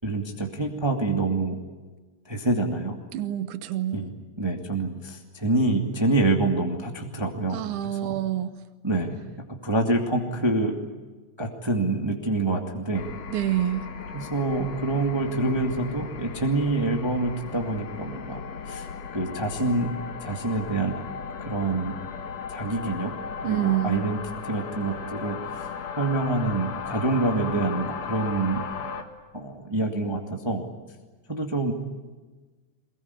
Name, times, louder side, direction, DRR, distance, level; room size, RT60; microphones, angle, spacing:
voice 1, 0.0-1.6 2.3-3.0 3.9-4.1 4.4-7.6 8.0-8.2 8.8-9.2 9.6-10.7 11.4-13.1 14.1-18.4 18.6-18.9 19.1-19.9 20.2-20.9 21.4-22.0 22.5-23.1 23.5-24.2 24.4-28.7 29.3-30.6 31.3-31.7, right 2 dB, 10° right, 3 dB, 1.8 m, -26 dB
voice 2, 3.1-4.0 7.5-8.5 13.3-13.9 23.4-24.1, right 12 dB, 85° right, 12 dB, 2.5 m, -27 dB
sound 1, 12.9-29.0, left 6 dB, 60° left, 2.8 m, -36 dB
23.5 x 21.0 x 9.7 m, 1.3 s
omnidirectional pair, 3.4 m